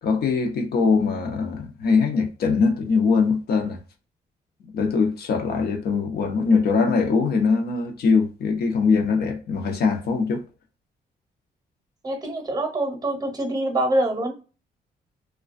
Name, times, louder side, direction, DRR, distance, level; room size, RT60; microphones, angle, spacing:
voice 1, 0.0-3.8 4.7-10.4, left 4 dB, 70° left, 0.7 m, -22 dB
voice 2, 12.0-14.3, right 1 dB, 20° right, 0.8 m, -25 dB
2.3 x 2.2 x 2.4 m
cardioid pair, 85°, 17 cm